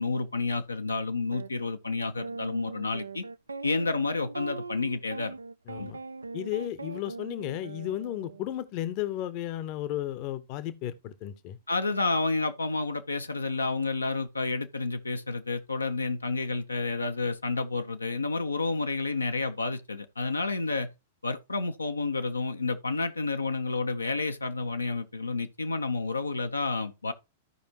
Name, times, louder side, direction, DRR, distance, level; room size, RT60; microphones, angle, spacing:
voice 1, 0.0-3.2 3.6-5.3 5.8-5.9 11.7-20.9 21.2-27.1, left 3 dB, 85° left, 0.8 m, -30 dB
sound 1, 1.3-1.5 2.2-8.5, right 3 dB, 80° right, 0.5 m, -40 dB
voice 2, 5.7-6.0 6.3-11.6, left 12 dB, 45° left, 0.8 m, -34 dB
14.0 x 5.1 x 2.9 m
figure-of-eight pair, 100°, 0 cm